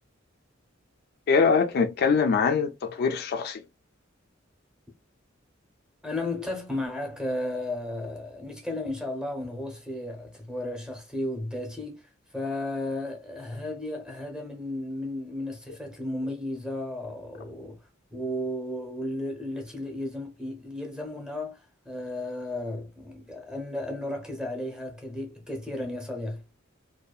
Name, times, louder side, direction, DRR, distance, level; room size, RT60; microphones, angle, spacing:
voice 1, 1.3-3.6, left 5 dB, 50° left, 0.3 m, -23 dB
voice 2, 6.0-12.0 12.3-17.8 18.1-21.6 21.8-26.4, left 1 dB, 5° right, 0.7 m, -34 dB
2.6 x 2.2 x 2.3 m
head